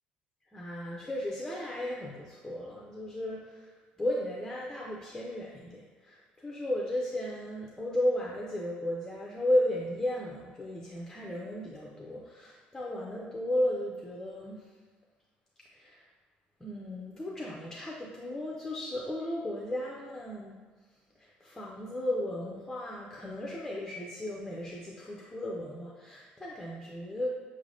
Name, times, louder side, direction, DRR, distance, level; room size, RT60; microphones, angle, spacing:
voice 1, 0.5-3.7 4.0-14.7 15.7-16.1 16.6-20.6 21.2-27.3, left 1 dB, 10° left, -3 dB, 0.4 m, -34 dB
5.5 x 3.2 x 2.6 m, 1.4 s
cardioid pair, 155°, 3 cm